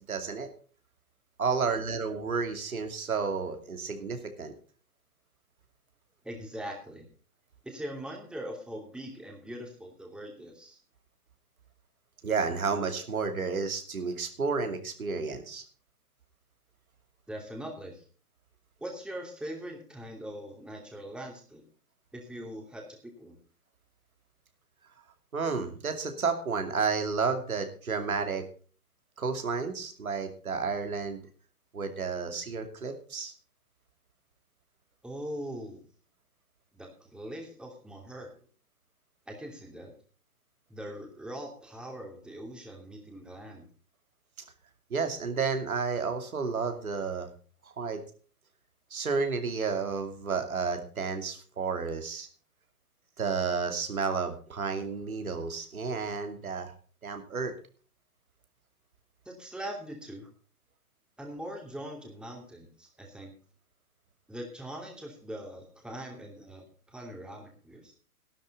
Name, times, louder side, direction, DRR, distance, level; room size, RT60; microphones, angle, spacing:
voice 1, 0.1-0.5 1.4-4.5 12.2-15.6 25.3-28.4 29.2-31.2 31.7-33.3 44.9-47.3 47.6-48.0 48.9-52.3 53.2-56.7 57.0-57.5, right 5 dB, 65° right, 6 dB, 2.7 m, -31 dB
voice 2, 6.2-7.0 7.6-10.8 17.3-18.0 18.8-21.6 22.1-22.9 23.2-23.4 35.0-35.8 36.7-38.3 39.3-39.9 40.7-43.7 59.3-60.3 61.2-63.3 64.3-67.9, right 1 dB, ahead, 1 dB, 2.7 m, -41 dB
13.5 x 12.0 x 4.1 m, 0.41 s
figure-of-eight pair, 125°, 45 cm